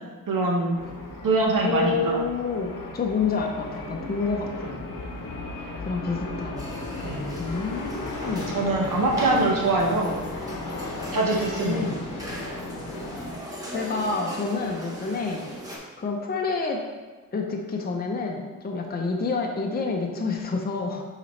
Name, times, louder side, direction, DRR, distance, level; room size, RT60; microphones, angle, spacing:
voice 1, 0.3-0.8 1.2-2.2 7.0-7.2 8.5-10.1 11.1-11.8, right 2 dB, 75° right, -1 dB, 1.2 m, -23 dB
sound 1, 0.7-13.4, left 2 dB, 75° left, 0.9 m, -36 dB
voice 2, 1.6-4.9 5.8-6.7 7.4-8.5 8.9-9.0 11.6-12.0 13.7-15.5 16.0-16.8 17.3-21.0, left 4 dB, 30° left, 1 dB, 0.6 m, -28 dB
sound 2, 6.6-15.8, equal, 10° right, 1.0 m, -38 dB
6.9 x 5.0 x 3.2 m, 1.3 s
wide cardioid pair, 170°, 33 cm